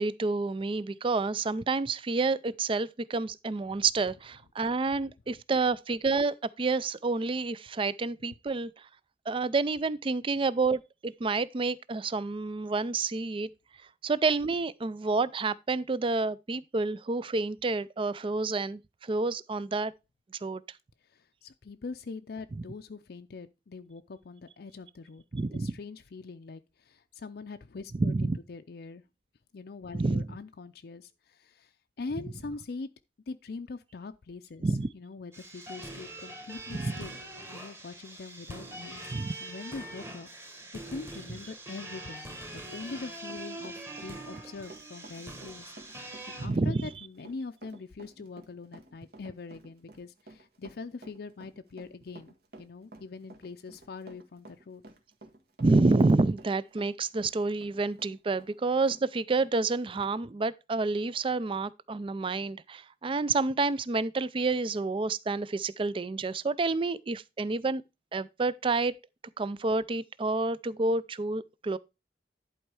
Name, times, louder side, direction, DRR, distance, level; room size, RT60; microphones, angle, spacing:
voice 1, 0.0-8.9 9.3-13.5 14.0-19.9 20.4-20.6 25.3-25.7 28.0-28.4 29.9-30.3 34.6-34.9 36.7-37.0 39.1-39.3 46.4-46.9 55.6-67.8 68.1-68.9 69.4-71.8, right 3 dB, 30° right, 0.4 m, -29 dB
voice 2, 21.0-25.2 25.5-29.0 29.5-32.9 33.3-34.7 34.9-37.2 37.5-39.1 39.4-40.6 40.9-54.8, left 4 dB, 60° left, 0.5 m, -43 dB
sound 1, 35.3-46.5, right 1 dB, 15° right, 1.6 m, -43 dB
Run, 42.6-59.0 59.4-59.5 60.0-60.2, right 2 dB, 60° right, 1.7 m, -53 dB
11.0 x 4.4 x 4.7 m
head